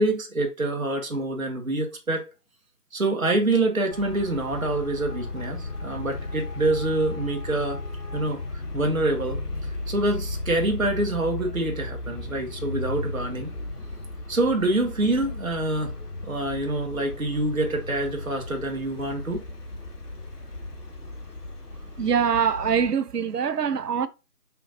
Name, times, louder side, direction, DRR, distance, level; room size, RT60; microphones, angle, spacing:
voice 1, 0.0-2.2 2.9-7.8 8.1-8.4 8.7-9.4 9.9-13.5 14.3-15.9 16.2-19.4, right 2 dB, 60° right, 0.9 m, -26 dB
Traffic noise roadway noise, 3.9-22.9, left 2 dB, 90° left, 1.2 m, -35 dB
voice 2, 21.8-24.1, right 7 dB, 85° right, 0.6 m, -24 dB
5.6 x 2.6 x 2.7 m
figure-of-eight pair, 180°, 47 cm